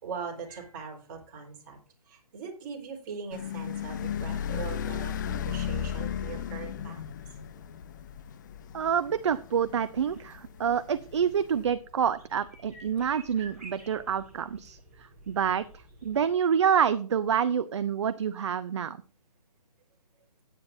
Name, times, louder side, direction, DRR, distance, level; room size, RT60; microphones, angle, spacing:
voice 1, 0.0-1.8 2.1-7.0, right 5 dB, 30° right, 0 dB, 3.9 m, -41 dB
sound 1, 3.3-11.6, left 9 dB, 30° left, 0.6 m, -35 dB
voice 2, 8.7-14.8 15.3-15.6 16.0-19.0, right 8 dB, 45° right, 13 dB, 0.6 m, -27 dB
sound 2, 9.6-16.4, right 2 dB, 5° right, 4.6 m, -52 dB
16.0 x 9.2 x 2.6 m, 0.38 s
figure-of-eight pair, 145°, 20 cm